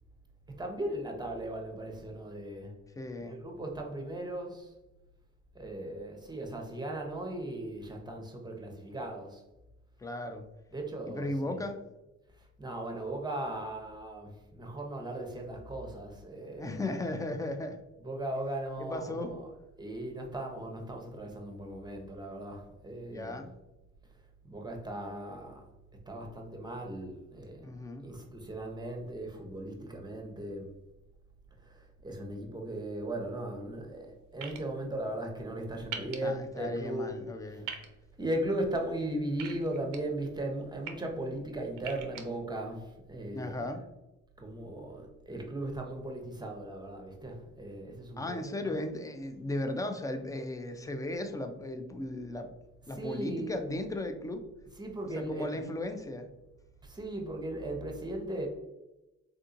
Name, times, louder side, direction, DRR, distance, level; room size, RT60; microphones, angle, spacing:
voice 1, 0.6-2.7 3.2-4.7 5.5-9.4 10.7-11.6 12.4-16.9 18.0-23.4 24.5-25.6 26.1-27.7 28.0-30.7 31.6-37.7 38.2-43.7 44.4-48.8 52.9-53.6 54.7-55.7 56.8-58.5, right 1 dB, 15° right, 2 dB, 0.7 m, -38 dB
voice 2, 3.0-3.4 10.0-10.5 11.1-11.8 16.6-17.8 18.8-19.3 23.0-23.5 27.6-28.1 36.2-37.7 43.3-43.8 48.2-52.5 52.9-54.4 55.2-56.3, left 1 dB, 10° left, 6 dB, 0.4 m, -36 dB
sound 1, 34.4-34.6 35.9-36.2 37.7-37.9 39.4-40.0 40.6-40.9 41.8-42.2, right 8 dB, 90° right, 0.5 m, -39 dB
3.5 x 2.7 x 2.5 m, 0.99 s
cardioid pair, 90°, 30 cm